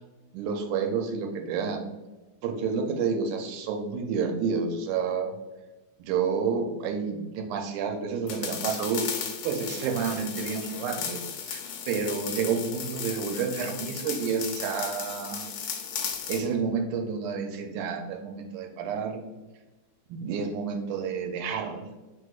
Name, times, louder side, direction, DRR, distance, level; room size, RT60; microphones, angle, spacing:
voice 1, 0.3-1.9 2.4-5.4 6.0-9.0 9.4-11.6 11.9-15.5 16.3-19.2 20.1-21.8, right 6 dB, 80° right, 3 dB, 1.9 m, -30 dB
sound 1, 8.3-16.5, left 7 dB, 85° left, 1.5 m, -35 dB
4.8 x 4.0 x 2.3 m, 1.1 s
omnidirectional pair, 3.6 m